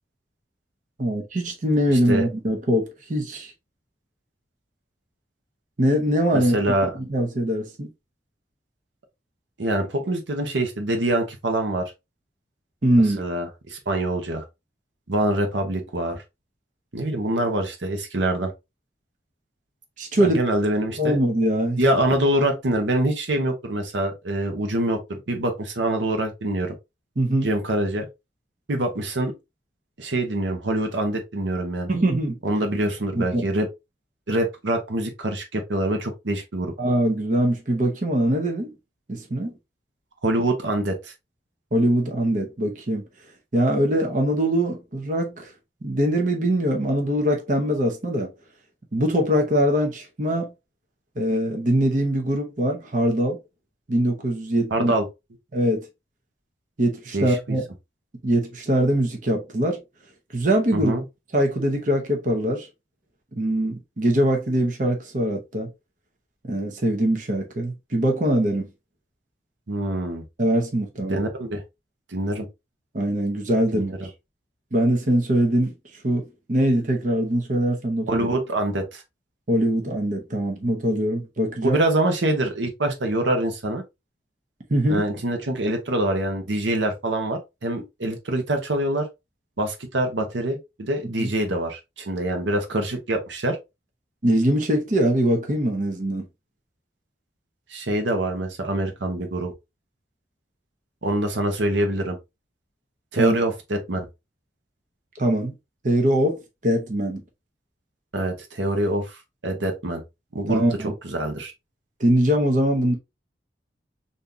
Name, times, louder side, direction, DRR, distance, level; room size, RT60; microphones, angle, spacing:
voice 1, 1.0-3.5 5.8-6.5 7.1-7.9 12.8-13.2 20.0-20.4 21.0-21.8 27.2-27.5 31.9-32.4 33.2-33.4 36.8-38.7 39.1-39.5 41.7-43.0 43.5-45.5 45.8-48.3 48.9-50.5 51.2-53.4 53.9-54.9 55.5-55.9 56.8-57.6 58.2-59.8 60.3-60.9 61.3-62.7 63.4-65.7 66.5-68.7 70.4-71.2 72.9-74.1 74.7-75.7 76.0-78.3 79.5-81.8 84.7-85.1 91.2-91.3 94.2-96.2 103.2-103.4 105.2-105.5 105.8-107.2 110.5-110.9 112.0-112.9, right 1 dB, 45° right, 0.7 m, -22 dB
voice 2, 6.3-6.9 9.6-11.8 13.2-14.4 15.1-16.2 16.9-18.5 20.2-21.2 21.8-26.7 27.4-28.1 28.7-29.3 30.0-31.9 32.4-33.7 34.3-36.7 40.2-41.1 54.7-55.1 57.1-57.6 60.7-61.0 69.7-70.2 71.1-71.6 72.1-72.5 73.7-74.1 78.1-79.0 81.6-83.8 84.9-89.1 89.6-93.6 97.7-99.5 101.0-102.2 103.1-104.1 108.1-109.1 109.4-110.0 110.3-110.6 111.0-111.5, right 1 dB, 90° right, 0.9 m, -25 dB
3.6 x 2.7 x 2.7 m
head